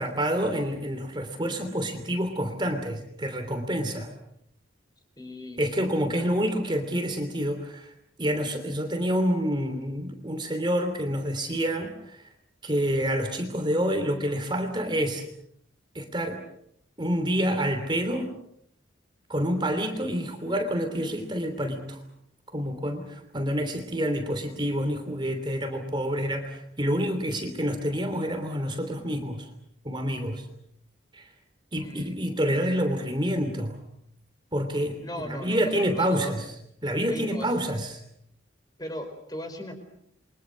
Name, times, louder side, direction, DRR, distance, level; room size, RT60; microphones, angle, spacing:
voice 1, 0.0-4.1 5.6-7.9 8.2-12.2 12.6-15.2 15.9-16.4 17.0-18.3 19.3-22.0 22.5-29.5 29.8-30.5 31.1-31.3 31.7-33.8 34.5-36.5 36.8-38.0, equal, 25° right, 6 dB, 3.1 m, -28 dB
voice 2, 5.2-5.6 31.8-32.2 35.0-36.4 37.1-37.5 38.8-39.7, left 1 dB, 20° left, 6 dB, 4.7 m, -37 dB
29.5 x 24.0 x 6.4 m, 0.73 s
head